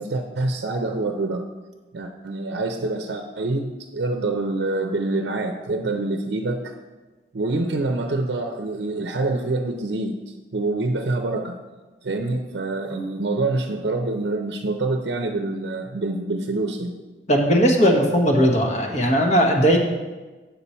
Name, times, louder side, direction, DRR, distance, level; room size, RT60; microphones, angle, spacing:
voice 1, 0.0-1.5 1.9-6.7 7.3-10.2 10.5-11.6 12.0-17.0, right 2 dB, 75° right, 5 dB, 0.6 m, -26 dB
voice 2, 17.3-19.8, equal, 40° left, 1 dB, 1.1 m, -18 dB
7.6 x 6.8 x 4.2 m, 1.2 s
head